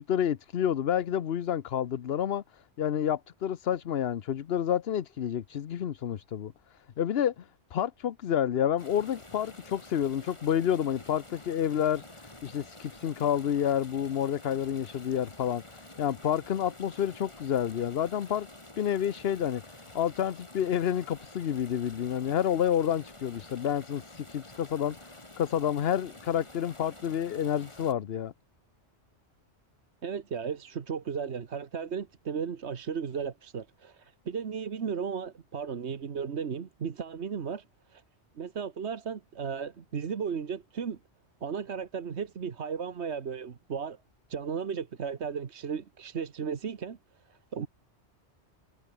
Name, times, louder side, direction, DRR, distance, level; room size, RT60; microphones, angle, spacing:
voice 1, 0.0-18.5 18.8-19.6 19.9-25.0 25.4-28.3, left 9 dB, 65° left, 1.0 m, -29 dB
sound 1, 8.8-27.9, left 1 dB, 25° left, 3.0 m, -50 dB
voice 2, 30.0-37.6 37.9-38.0 38.4-41.0 41.4-44.0 44.3-47.0 47.3-47.7, right 6 dB, 75° right, 1.5 m, -35 dB
omnidirectional pair, 1.2 m